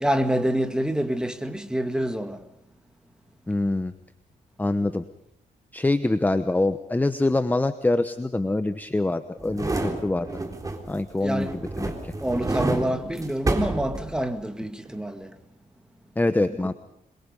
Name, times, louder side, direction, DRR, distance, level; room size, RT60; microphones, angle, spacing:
voice 1, 0.0-2.4 11.2-11.6 12.2-15.3 16.6-16.7, right 1 dB, 5° right, 1.9 m, -27 dB
voice 2, 3.5-3.9 4.6-5.0 5.7-10.3 10.9-11.5 11.8-12.1 16.2-16.7, left 2 dB, 10° left, 1.0 m, -24 dB
sound 1, 9.4-11.1 11.4-14.5 14.9-15.0, right 2 dB, 20° right, 3.7 m, -29 dB
26.5 x 23.0 x 5.4 m
cardioid pair, 110°, 16 cm